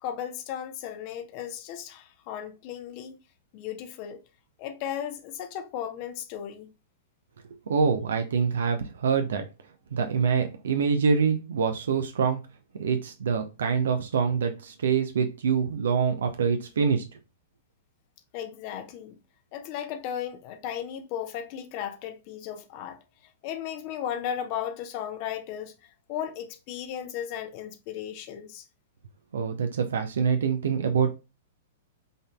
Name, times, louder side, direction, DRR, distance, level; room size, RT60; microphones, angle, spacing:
voice 1, 0.0-3.1 3.5-4.2 4.6-6.7 18.3-19.2 19.5-23.0 23.4-25.7 26.1-28.6, left 9 dB, 40° left, 0.9 m, -35 dB
voice 2, 7.7-9.4 9.9-12.4 12.8-17.0 29.3-31.1, right 6 dB, 65° right, 0.7 m, -25 dB
5.3 x 4.0 x 2.2 m
figure-of-eight pair, 105°, 0 cm